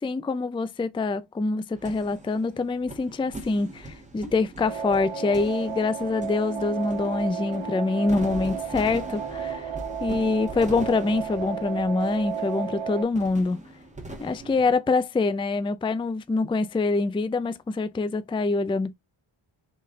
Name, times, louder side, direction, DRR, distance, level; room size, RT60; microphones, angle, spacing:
voice 1, 0.0-9.7 10.0-13.6 14.2-18.9, left 3 dB, 10° left, 0.3 m, -25 dB
sound 1, 1.7-14.7, right 1 dB, 15° right, 1.3 m, -42 dB
sound 2, 4.6-13.0, right 7 dB, 70° right, 0.9 m, -33 dB
4.1 x 3.1 x 3.6 m
wide cardioid pair, 75°, 49 cm